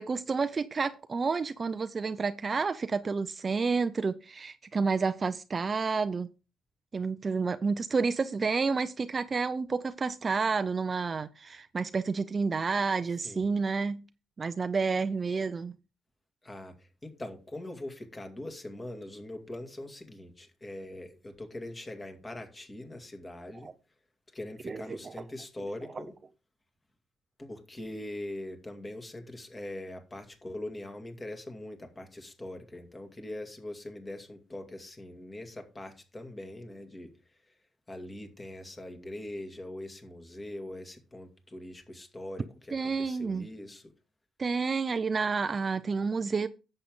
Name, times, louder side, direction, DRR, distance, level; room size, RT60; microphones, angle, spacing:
voice 1, 0.0-6.3 6.9-14.0 14.4-15.7 23.5-23.7 24.6-25.1 25.9-26.0 42.7-43.5 44.4-46.5, right 4 dB, 35° right, 0.5 m, -30 dB
voice 2, 16.4-23.7 24.3-26.1 27.4-37.1 37.9-43.8, left 1 dB, 20° left, 2.2 m, -42 dB
10.5 x 7.7 x 3.7 m
cardioid pair, 90°, 0 cm